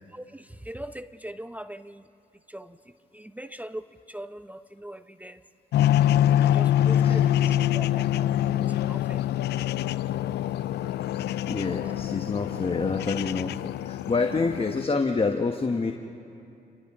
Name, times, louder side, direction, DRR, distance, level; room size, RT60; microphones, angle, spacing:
voice 1, 0.1-2.0 2.5-2.8 3.1-5.4 6.4-8.3 8.7-9.3, right 1 dB, 10° right, 11 dB, 0.7 m, -41 dB
sound 1, 5.7-14.9, left 11 dB, 70° left, 0.4 m, -25 dB
Crowd, 7.3-13.6, right 4 dB, 75° right, 2.3 m, -51 dB
voice 2, 11.3-15.9, left 4 dB, 30° left, 4 dB, 1.3 m, -27 dB
29.5 x 24.5 x 3.7 m, 2.6 s
supercardioid pair, 55°, 18 cm